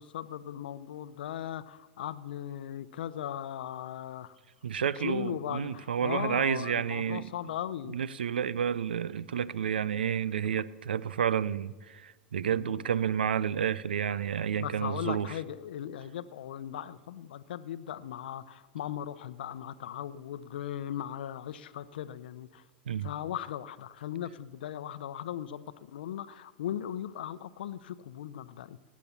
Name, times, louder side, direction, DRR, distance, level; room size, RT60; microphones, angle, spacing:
voice 1, 0.0-4.4 5.0-8.0 12.4-12.9 14.6-22.6 23.0-28.8, left 10 dB, 75° left, 0.6 m, -38 dB
voice 2, 4.6-7.3 7.9-15.3 22.9-23.1, right 8 dB, 85° right, 0.5 m, -30 dB
18.5 x 8.5 x 7.0 m
hypercardioid pair, 105°, 5 cm